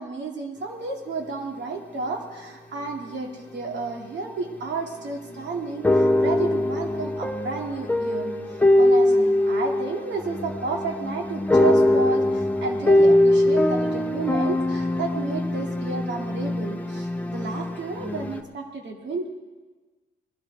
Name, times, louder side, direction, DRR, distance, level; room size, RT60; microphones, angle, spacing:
voice 1, 0.0-8.3 8.8-19.3, right 3 dB, 65° right, 1 dB, 2.2 m, -32 dB
sound 1, 4.6-4.7 5.3-18.4, left 1 dB, 10° left, 0.9 m, -22 dB
21.0 x 12.0 x 3.4 m, 1.3 s
cardioid pair, 90°, 20 cm